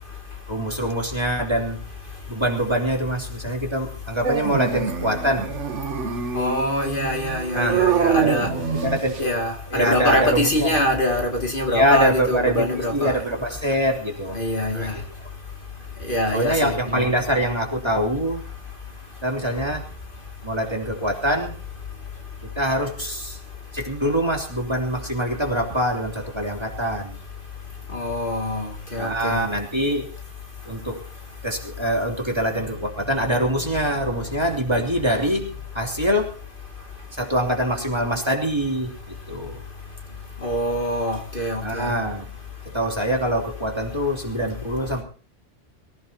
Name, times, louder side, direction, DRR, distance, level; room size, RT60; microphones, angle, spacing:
voice 1, 0.5-1.8 2.3-5.5 7.5-7.9 8.2-9.3 9.7-10.7 11.7-14.4 14.7-15.0 16.3-18.4 19.2-19.8 20.4-21.6 22.4-23.4 23.7-27.2 29.0-30.1 30.6-31.0 31.4-35.5 35.7-36.4 37.1-39.6 41.6-42.3 42.6-45.0, equal, 20° right, 3.1 m, -24 dB
Dog, 4.2-9.3, right 7 dB, 75° right, 1.4 m, -25 dB
voice 2, 6.3-8.5 9.2-13.2 14.3-14.9 16.1-17.0 27.9-29.4 40.4-41.9, left 1 dB, 45° left, 2.6 m, -24 dB
24.5 x 16.0 x 2.9 m
omnidirectional pair, 1.2 m